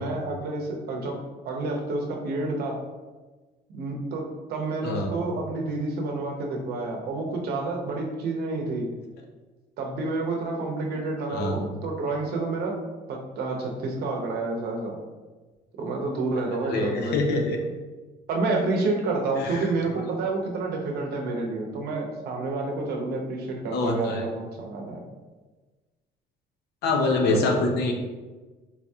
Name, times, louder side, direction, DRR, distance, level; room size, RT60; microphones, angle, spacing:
voice 1, 0.0-2.8 3.7-8.9 9.8-12.7 13.1-15.0 15.8-17.4 18.3-25.0 27.3-27.5, right 3 dB, 70° right, 1 dB, 0.7 m, -29 dB
voice 2, 4.8-5.1 10.9-11.0 11.3-11.6 16.6-17.6 19.4-19.7 23.7-24.2 26.8-27.9, left 3 dB, 75° left, 2 dB, 0.6 m, -25 dB
3.9 x 2.7 x 2.3 m, 1.3 s
cardioid pair, 110°, 17 cm